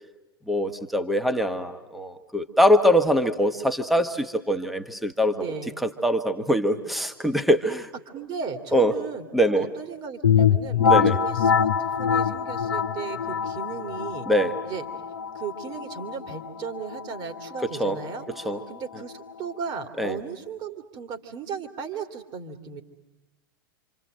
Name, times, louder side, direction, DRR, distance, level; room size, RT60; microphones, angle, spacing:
voice 1, 0.5-5.4 5.8-7.9 8.7-8.9 9.3-9.6 10.8-11.2 14.3-14.5 17.6-18.0 18.3-18.6 20.0-20.2, equal, ahead, 8 dB, 1.5 m, -23 dB
voice 2, 5.3-5.8 8.1-14.3 14.6-14.9 15.3-22.8, right 6 dB, 35° right, 6 dB, 2.6 m, -36 dB
sound 1, 10.2-19.8, left 7 dB, 75° left, 1.0 m, -25 dB
27.0 x 27.0 x 7.8 m, 1.0 s
figure-of-eight pair, 90°, 12 cm